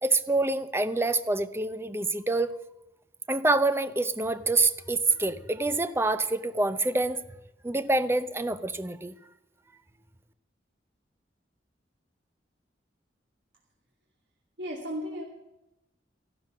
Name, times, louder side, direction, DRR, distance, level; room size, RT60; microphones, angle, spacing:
voice 1, 0.0-2.5 3.3-7.2 7.6-9.1, right 2 dB, 15° right, 12 dB, 0.6 m, -26 dB
voice 2, 14.6-15.2, equal, 80° right, -2 dB, 2.5 m, -34 dB
14.0 x 12.5 x 6.1 m, 0.95 s
head